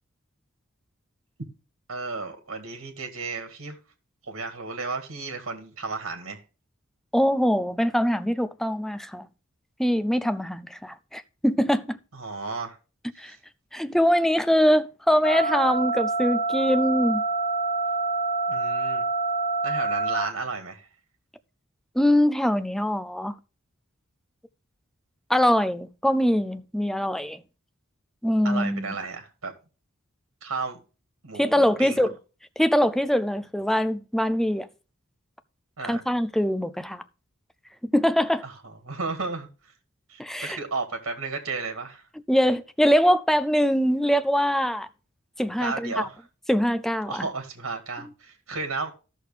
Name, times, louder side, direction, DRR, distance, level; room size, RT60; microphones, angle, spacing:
voice 1, 1.9-3.8 4.3-6.4 12.1-12.8 13.2-13.4 18.5-19.1 19.6-20.9 28.4-29.5 30.4-30.8 31.2-32.0 35.8-36.0 38.4-38.5 38.8-39.5 40.1-42.0 45.6-46.2 47.1-48.9, right 4 dB, 75° right, 1.9 m, -33 dB
voice 2, 7.1-9.3 9.8-12.0 13.2-13.4 13.7-17.2 22.0-23.4 25.3-27.4 28.2-28.9 31.4-32.1 32.6-34.7 35.8-37.0 37.9-38.4 40.2-40.6 42.3-44.9 45.4-46.1 46.5-47.3, equal, ahead, 0.4 m, -23 dB
sound 1, 15.2-20.2, right 3 dB, 40° left, 1.0 m, -26 dB
13.0 x 6.4 x 3.3 m
head